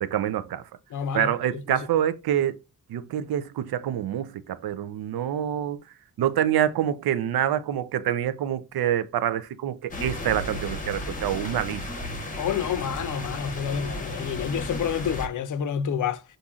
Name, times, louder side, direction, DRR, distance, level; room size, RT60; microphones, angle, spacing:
voice 1, 0.0-0.6 1.1-2.6 2.9-5.8 6.2-11.8, right 10 dB, 90° right, 0.5 m, -26 dB
voice 2, 0.9-1.9 12.4-16.2, left 8 dB, 60° left, 0.5 m, -29 dB
sound 1, 9.9-15.3, left 1 dB, 20° left, 0.7 m, -34 dB
6.9 x 2.6 x 2.4 m
wide cardioid pair, 165°, 36 cm